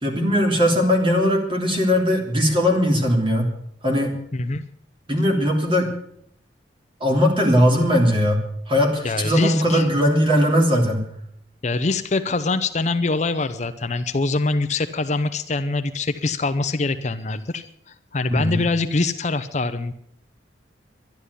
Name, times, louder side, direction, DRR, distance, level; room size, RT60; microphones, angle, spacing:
voice 1, 0.0-3.5 3.8-4.1 5.1-5.9 7.0-11.0 18.3-18.6, equal, 30° right, 1 dB, 3.1 m, -19 dB
voice 2, 4.3-4.6 9.0-9.9 11.6-19.9, left 3 dB, 40° left, 11 dB, 0.6 m, -24 dB
12.0 x 11.5 x 8.2 m, 0.69 s
head